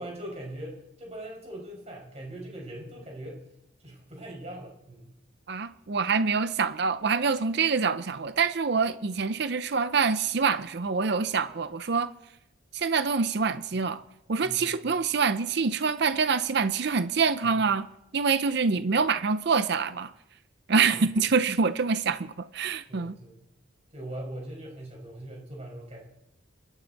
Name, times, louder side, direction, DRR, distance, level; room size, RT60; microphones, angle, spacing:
voice 1, 0.0-3.5 3.8-5.1 14.4-14.9 17.4-17.6 20.9-21.0 22.9-23.5 23.9-26.0, right 1 dB, 35° right, 0 dB, 5.4 m, -41 dB
voice 2, 5.5-12.1 12.7-14.0 14.3-17.9 18.1-20.1 20.7-23.1, right 5 dB, 55° right, 12 dB, 0.6 m, -26 dB
25.5 x 13.0 x 4.1 m, 0.84 s
head